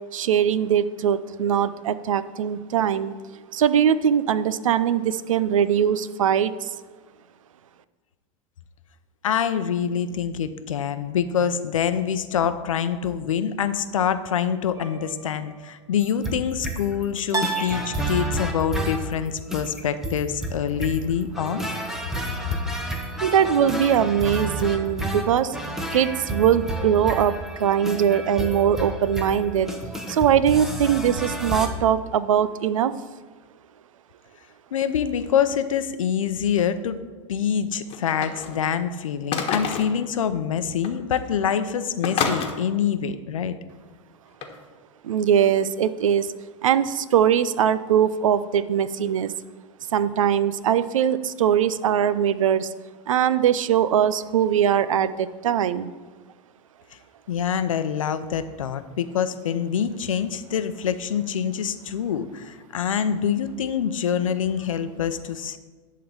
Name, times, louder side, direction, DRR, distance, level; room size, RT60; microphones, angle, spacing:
voice 1, 0.1-3.1 3.5-6.7 23.2-25.6 25.9-27.3 27.6-29.7 30.1-32.9 45.0-46.3 46.6-49.3 49.9-52.7 53.1-55.9, right 9 dB, 85° right, 15 dB, 0.5 m, -21 dB
voice 2, 9.2-21.7 22.4-22.5 34.7-37.0 37.3-43.6 57.3-65.6, left 8 dB, 90° left, 11 dB, 0.7 m, -25 dB
sound 1, 14.7-15.5 17.3-18.8, right 4 dB, 20° right, 1.5 m, -32 dB
Agent (Intro Music), 16.0-31.7, right 1 dB, 5° right, 1.2 m, -31 dB
sound 2, 37.9-38.7 39.3-40.0 40.8-40.9 41.2-41.4 42.0-42.5 44.4-44.6, left 6 dB, 35° left, 1.4 m, -28 dB
11.0 x 3.8 x 6.9 m, 1.4 s
hypercardioid pair, 105°, 16 cm